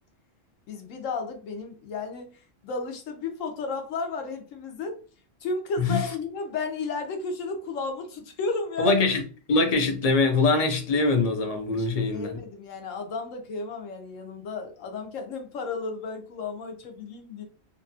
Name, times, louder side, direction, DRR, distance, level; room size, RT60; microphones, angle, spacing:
voice 1, 0.7-5.0 5.4-8.9 11.8-17.4, left 4 dB, 80° left, 1.1 m, -33 dB
voice 2, 8.8-9.2 9.5-12.4, left 3 dB, 45° left, 0.5 m, -23 dB
2.8 x 2.3 x 2.6 m
omnidirectional pair, 1.3 m